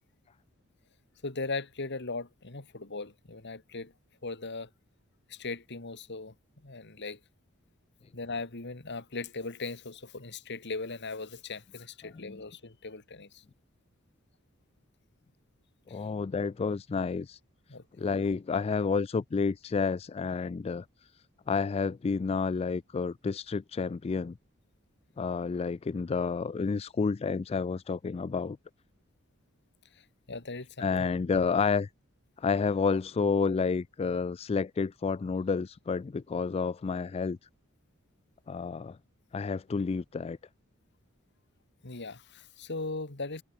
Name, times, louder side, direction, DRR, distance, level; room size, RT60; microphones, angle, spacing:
voice 1, 1.2-3.9 4.2-4.7 5.3-6.3 6.6-7.2 8.1-13.4 15.9-16.0 17.7-17.8 30.3-31.1 41.8-43.4, left 3 dB, 55° left, 2.2 m, -38 dB
voice 2, 15.9-17.4 18.0-20.9 21.5-24.4 25.2-28.6 30.8-31.9 32.4-37.4 38.5-39.0 39.3-40.4, left 5 dB, 30° left, 0.3 m, -30 dB
head